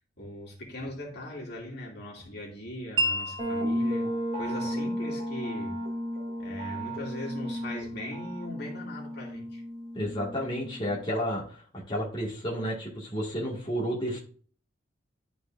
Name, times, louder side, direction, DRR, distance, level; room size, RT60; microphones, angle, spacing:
voice 1, 0.2-4.1 4.4-5.9 6.4-9.6, left 1 dB, 55° left, 2.5 m, -40 dB
Wind chime, 3.0-9.1, right 1 dB, 70° right, 0.8 m, -37 dB
sound 1, 3.4-11.0, equal, 35° right, 2.3 m, -34 dB
voice 2, 9.9-14.2, equal, 25° left, 1.9 m, -31 dB
11.5 x 4.6 x 2.5 m
head